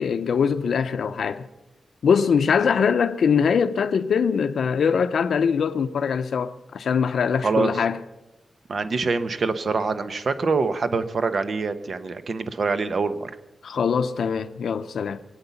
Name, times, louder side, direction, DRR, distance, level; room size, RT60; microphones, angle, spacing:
voice 1, 0.0-1.5 2.0-8.0 13.6-15.2, left 6 dB, 85° left, 0.6 m, -22 dB
voice 2, 8.7-13.3, right 4 dB, 55° right, 1.0 m, -25 dB
22.5 x 8.8 x 7.0 m
wide cardioid pair, 135°, 0 cm